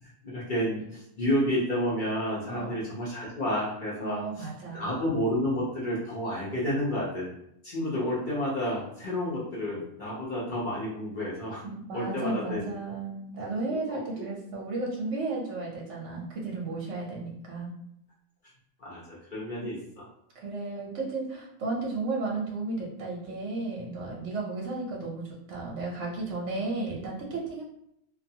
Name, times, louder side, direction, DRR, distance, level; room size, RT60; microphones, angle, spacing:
voice 1, 0.0-4.5 4.7-7.3 7.6-11.6 11.9-12.6 13.9-14.0 18.8-20.0, equal, 50° left, -7 dB, 0.6 m, -30 dB
voice 2, 2.4-2.8 4.0-4.9 11.6-17.7 20.4-27.6, right 3 dB, 65° right, -2 dB, 0.8 m, -34 dB
2.5 x 2.3 x 2.7 m, 0.75 s
omnidirectional pair, 1.6 m